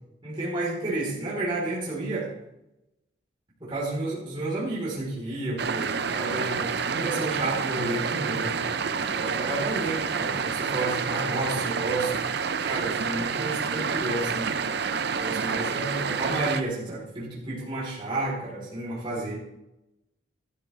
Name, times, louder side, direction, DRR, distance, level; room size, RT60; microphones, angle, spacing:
voice 1, 0.2-2.3 3.6-8.5 9.1-12.1 12.6-14.5 15.1-19.3, right 2 dB, 25° right, -7 dB, 3.9 m, -31 dB
sound 1, 5.6-16.6, right 5 dB, 55° right, 0.6 m, -28 dB
13.5 x 12.5 x 3.3 m, 0.90 s
head